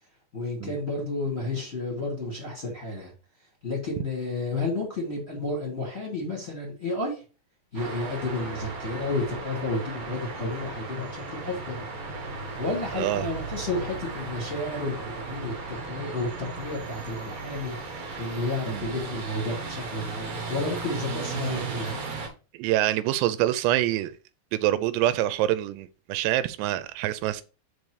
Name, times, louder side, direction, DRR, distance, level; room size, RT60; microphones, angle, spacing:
voice 1, 0.3-3.1 3.6-7.2 7.7-11.8 12.6-22.0, left 2 dB, 20° left, 2.1 m, -31 dB
sound 1, 7.7-22.3, right 4 dB, 60° right, 1.4 m, -36 dB
voice 2, 12.9-13.3 18.7-18.9 22.5-24.1 24.5-27.4, right 14 dB, 85° right, 2.7 m, -25 dB
5.3 x 5.2 x 4.7 m
omnidirectional pair, 4.8 m